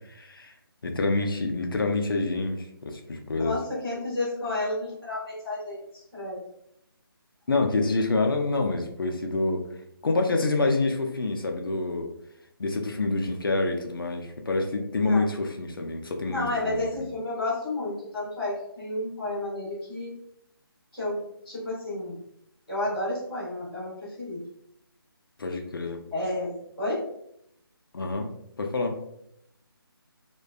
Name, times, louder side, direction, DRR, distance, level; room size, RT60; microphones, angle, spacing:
voice 1, 0.1-0.5 0.8-3.6 7.5-9.6 10.0-12.1 12.6-17.1 25.4-26.0 27.9-28.3 28.6-29.0, left 3 dB, 60° left, 3 dB, 0.4 m, -27 dB
voice 2, 3.3-5.8 6.1-6.4 15.1-15.2 16.3-20.1 20.9-21.2 21.4-22.2 22.7-24.4 26.1-27.0, left 2 dB, 5° right, -20 dB, 0.6 m, -31 dB
2.5 x 2.1 x 2.3 m, 0.76 s
hypercardioid pair, 180°, 13 cm